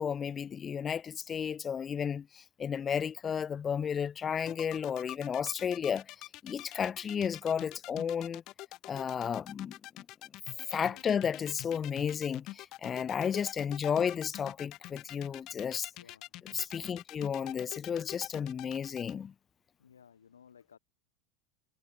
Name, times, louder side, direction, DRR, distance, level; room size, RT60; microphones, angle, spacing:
voice 1, 0.0-6.0 6.4-8.4 8.8-10.0 10.7-15.9 16.5-19.3, left 7 dB, 25° left, 0.5 m, -33 dB
sound 1, 4.4-19.1, left 17 dB, 45° left, 2.8 m, -45 dB
voice 2, 16.0-17.0 19.8-20.8, left 7 dB, 75° left, 7.1 m, -59 dB
figure-of-eight pair, 80°, 0 cm